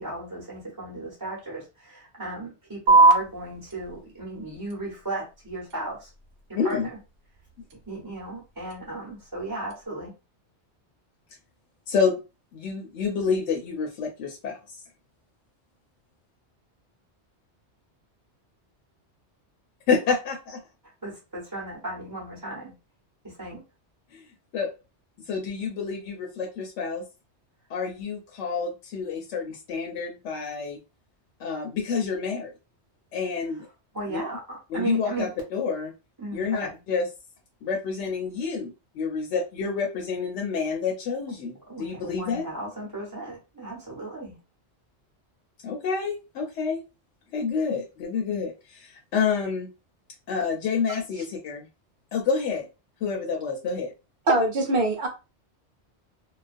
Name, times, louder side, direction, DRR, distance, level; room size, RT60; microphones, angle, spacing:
voice 1, 0.0-6.1 6.5-7.0 7.9-10.1 20.8-22.7 23.2-23.6 33.9-35.3 36.2-36.8 41.7-44.4, right 2 dB, 20° right, -5 dB, 0.8 m, -35 dB
sound 1, 2.9-9.9, right 3 dB, 80° right, 0.9 m, -26 dB
voice 2, 6.5-6.9 11.9-12.2 12.5-14.8 19.9-20.6 24.1-24.3 24.5-24.7 25.3-27.0 27.7-30.8 31.4-32.5 33.1-33.7 34.1-34.2 34.7-35.9 36.3-37.1 37.6-42.5 45.6-46.8 47.3-49.7 50.3-51.6 52.1-52.7 53.0-53.9, left 5 dB, 85° left, 1 dB, 0.9 m, -28 dB
voice 3, 54.3-55.1, right 2 dB, 55° right, 2 dB, 0.9 m, -23 dB
2.4 x 2.2 x 2.4 m, 0.29 s
omnidirectional pair, 1.2 m